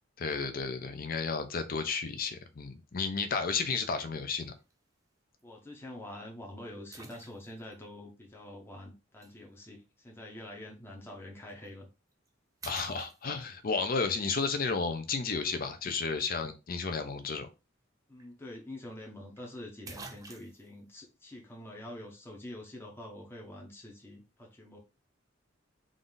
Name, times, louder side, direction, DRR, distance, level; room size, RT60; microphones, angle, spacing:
voice 1, 0.2-4.5 12.6-17.5, left 4 dB, 50° left, 0.6 m, -32 dB
sound 1, 4.4-4.7 5.4-5.5 6.9-7.7 9.2-9.3 11.5-11.7 12.1-12.3 12.6-13.7 17.8-17.9 18.2-18.3 19.4-19.5 19.9-20.7, right 4 dB, 20° right, 0.4 m, -48 dB
voice 2, 5.4-11.9 18.1-24.8, left 1 dB, 10° left, 0.7 m, -46 dB
3.7 x 2.6 x 3.8 m
head